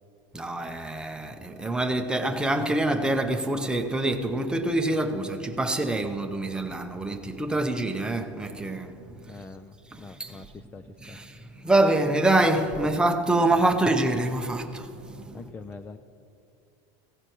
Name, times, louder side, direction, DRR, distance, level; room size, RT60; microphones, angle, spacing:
voice 1, 0.3-8.9 9.3-9.4 9.9-10.5 11.0-15.4, right 2 dB, 5° right, 0.7 m, -26 dB
voice 2, 9.3-11.2 12.8-12.9 15.3-16.0, left 3 dB, 10° left, 0.3 m, -44 dB
19.5 x 16.5 x 3.0 m
supercardioid pair, 150°, 15 cm